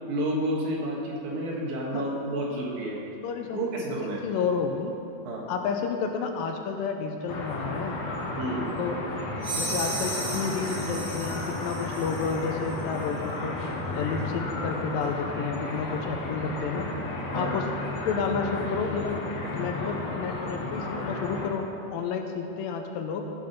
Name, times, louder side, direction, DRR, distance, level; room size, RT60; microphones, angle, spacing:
voice 1, 0.1-3.0 3.5-4.2 5.3-5.4 8.4-8.6 17.3-17.5, right 1 dB, 80° right, -2 dB, 3.2 m, -30 dB
voice 2, 3.2-3.8 4.2-4.9 5.5-8.0 8.8-9.0 9.5-13.6 13.9-16.8 17.3-17.7 18.1-19.2 19.5-21.6 21.9-23.3, left 5 dB, 80° left, 4 dB, 2.3 m, -31 dB
sound 1, 7.3-21.5, left 2 dB, 60° left, 2.2 m, -33 dB
sound 2, 9.4-12.4, right 2 dB, 55° right, 2.6 m, -35 dB
14.5 x 5.7 x 5.2 m, 3.0 s
omnidirectional pair, 4.2 m